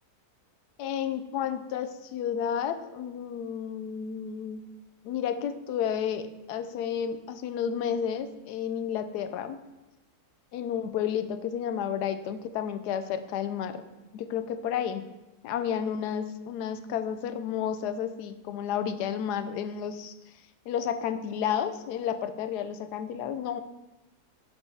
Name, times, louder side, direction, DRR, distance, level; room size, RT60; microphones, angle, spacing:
voice 1, 0.8-4.6 5.0-9.6 10.5-13.8 14.1-15.0 15.4-20.1 20.7-23.6, left 8 dB, 90° left, 11 dB, 1.1 m, -31 dB
6.7 x 5.3 x 4.7 m, 1.0 s
omnidirectional pair, 1.7 m